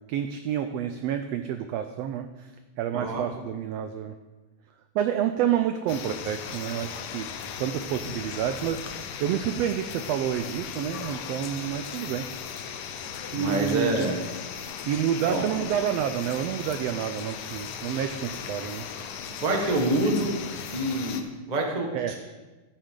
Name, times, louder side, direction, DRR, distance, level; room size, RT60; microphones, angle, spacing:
voice 1, 0.1-2.5 2.8-4.1 4.9-7.3 7.6-8.8 9.2-12.6 13.3-14.2 14.9-18.8 21.9-22.2, right 10 dB, 85° right, 8 dB, 1.4 m, -29 dB
voice 2, 2.9-3.2 13.3-14.2 15.3-15.7 19.4-20.4 20.7-22.2, right 2 dB, 45° right, 1 dB, 0.5 m, -27 dB
sound 1, 5.9-21.2, left 7 dB, 80° left, 2.1 m, -37 dB
13.0 x 9.1 x 3.8 m, 1.2 s
omnidirectional pair, 3.4 m